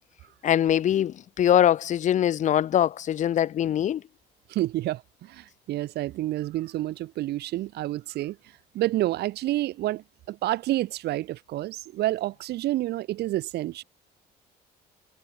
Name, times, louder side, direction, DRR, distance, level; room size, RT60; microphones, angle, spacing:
voice 1, 0.4-4.0, left 10 dB, 45° left, 0.7 m, -22 dB
voice 2, 4.5-8.4 8.7-13.8, right 15 dB, 75° right, 3.1 m, -29 dB
cardioid pair, 110°, 17 cm